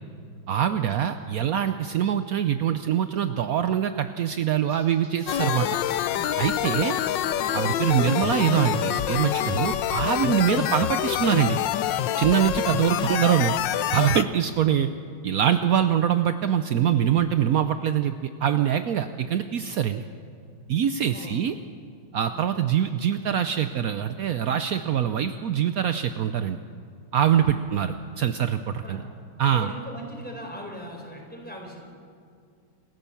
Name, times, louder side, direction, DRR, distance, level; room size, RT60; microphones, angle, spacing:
voice 1, 0.5-5.7 6.4-7.0 7.5-11.6 12.2-13.5 13.9-14.9 15.2-20.1 20.7-21.5 22.1-26.6 27.1-29.0 29.4-29.7, right 9 dB, 70° right, 9 dB, 0.8 m, -24 dB
sound 1, 4.7-10.8, equal, 10° right, 7.2 m, -50 dB
sound 2, 5.3-14.2, left 11 dB, 70° left, 1.3 m, -26 dB
voice 2, 29.4-31.8, equal, 5° left, 0 dB, 4.0 m, -40 dB
27.5 x 15.0 x 7.1 m, 2.3 s
omnidirectional pair, 2.3 m